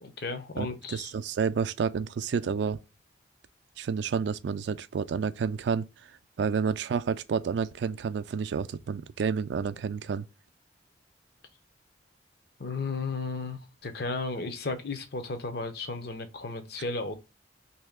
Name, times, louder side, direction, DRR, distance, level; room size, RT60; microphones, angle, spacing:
voice 1, 0.0-1.1 12.6-17.2, left 3 dB, 60° left, 0.7 m, -34 dB
voice 2, 0.6-2.8 3.8-5.9 6.4-10.2, right 6 dB, 70° right, 0.3 m, -30 dB
3.1 x 2.7 x 3.5 m
head